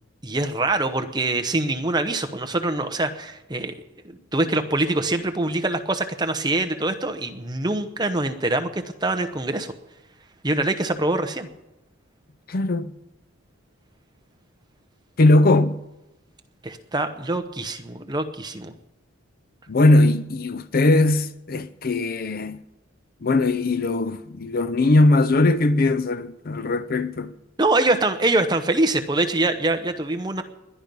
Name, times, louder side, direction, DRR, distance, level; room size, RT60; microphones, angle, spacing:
voice 1, 0.2-3.7 4.3-9.7 10.4-11.5 16.6-18.7 27.6-30.4, right 2 dB, 20° right, 0.9 m, -24 dB
voice 2, 12.5-12.9 15.2-15.8 19.7-22.6 23.2-27.3, left 2 dB, 45° left, 0.5 m, -19 dB
21.0 x 10.5 x 5.4 m
head